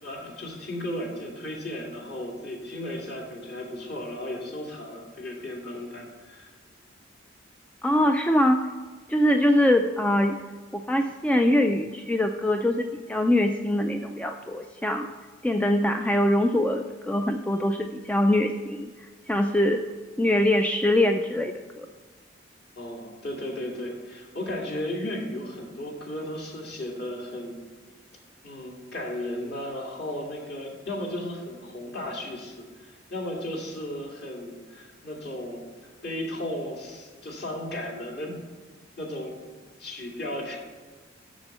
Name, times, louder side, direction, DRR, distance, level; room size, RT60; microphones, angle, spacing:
voice 1, 0.0-6.5 22.8-27.6 28.4-35.6 36.0-38.4 39.0-39.4 39.8-40.6, left 1 dB, 50° left, -1 dB, 2.3 m, -35 dB
voice 2, 7.8-8.6 9.1-10.4 10.7-15.1 15.4-18.9 19.3-19.8 20.2-21.9, left 1 dB, 5° left, 5 dB, 0.3 m, -23 dB
7.1 x 6.9 x 6.6 m, 1.4 s
head